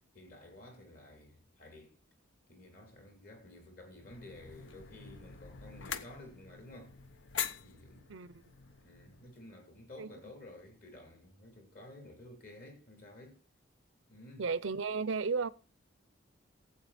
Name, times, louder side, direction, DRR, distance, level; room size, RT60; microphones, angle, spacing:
voice 1, 0.0-2.0 2.5-6.9 7.6-8.1 8.8-13.4 14.1-14.5, left 1 dB, 50° left, 3.2 m, -53 dB
sound 1, 4.0-9.4, left 8 dB, 70° left, 0.8 m, -44 dB
voice 2, 8.1-8.4 10.0-10.1 14.4-15.5, right 5 dB, 75° right, 0.6 m, -34 dB
15.5 x 7.8 x 4.2 m
head